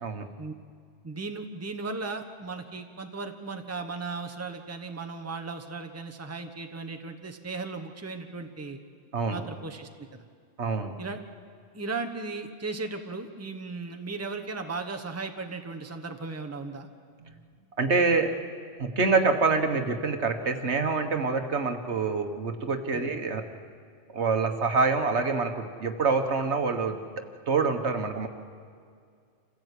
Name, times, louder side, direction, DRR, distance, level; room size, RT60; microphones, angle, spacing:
voice 1, 1.0-8.8 9.3-10.2 11.0-11.2 11.7-16.9 22.9-23.1, right 3 dB, 15° right, 5 dB, 1.1 m, -36 dB
voice 2, 10.6-10.9 17.2-17.3 17.8-18.3 18.8-23.4 24.1-27.0 27.5-28.3, right 4 dB, 60° right, 6 dB, 1.6 m, -26 dB
27.5 x 15.5 x 8.4 m, 2.2 s
omnidirectional pair, 1.3 m